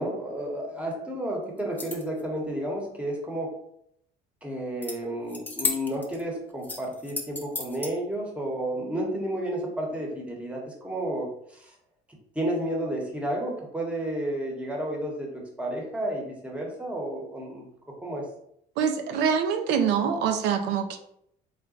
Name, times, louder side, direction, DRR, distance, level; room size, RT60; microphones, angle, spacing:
voice 1, 0.0-3.6 4.4-11.7 12.3-17.7 18.0-18.3, right 1 dB, 5° right, -1 dB, 1.0 m, -31 dB
sound 1, 1.6-2.2 4.8-5.0 5.3-6.2 6.6-7.9, left 3 dB, 10° left, 0.6 m, -33 dB
voice 2, 18.8-21.0, right 7 dB, 90° right, 6 dB, 0.5 m, -25 dB
3.9 x 2.1 x 3.8 m, 0.72 s
cardioid pair, 110°, 17 cm